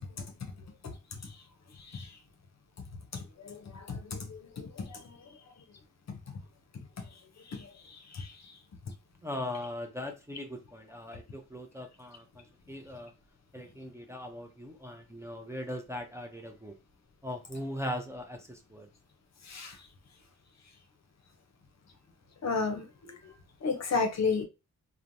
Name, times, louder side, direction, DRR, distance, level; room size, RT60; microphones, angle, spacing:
voice 1, 3.9-4.3 4.6-4.7 19.5-19.7 22.4-22.8 23.6-24.5, left 4 dB, 55° left, 0.6 m, -30 dB
voice 2, 9.2-13.1 13.5-16.8 17.2-18.9, left 1 dB, 10° right, 0.4 m, -40 dB
3.0 x 2.1 x 2.6 m
wide cardioid pair, 115°, 32 cm